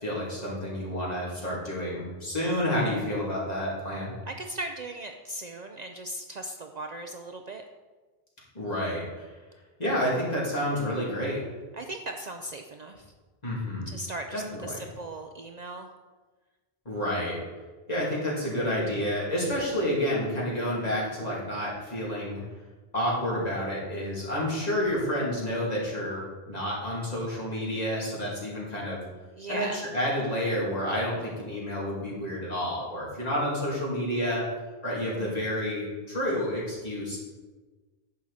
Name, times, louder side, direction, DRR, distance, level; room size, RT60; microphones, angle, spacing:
voice 1, 0.0-4.1 8.5-9.3 9.8-11.5 13.4-13.9 14.3-14.8 16.8-17.4 17.9-22.4 22.9-29.0 29.5-34.5 34.8-37.2, equal, 40° left, -5 dB, 3.0 m, -29 dB
voice 2, 4.3-7.6 11.7-13.1 13.9-15.9 29.4-29.9, right 1 dB, 50° right, 5 dB, 0.6 m, -38 dB
10.5 x 7.6 x 4.2 m, 1.3 s
omnidirectional pair, 1.0 m